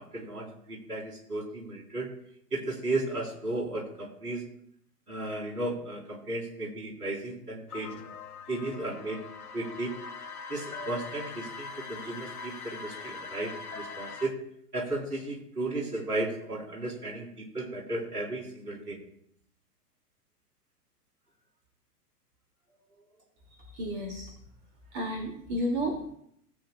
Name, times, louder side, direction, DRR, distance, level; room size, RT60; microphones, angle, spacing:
voice 1, 0.0-2.1 2.5-4.4 5.1-8.0 8.5-9.2 9.5-10.0 10.5-14.3 14.7-19.0, right 2 dB, 75° right, -2 dB, 4.2 m, -34 dB
sound 1, 7.7-14.3, left 5 dB, 65° left, 1.6 m, -42 dB
voice 2, 23.7-24.3 24.9-26.1, equal, 45° right, 0 dB, 2.7 m, -32 dB
20.0 x 8.6 x 2.4 m, 0.70 s
figure-of-eight pair, 105°, 48 cm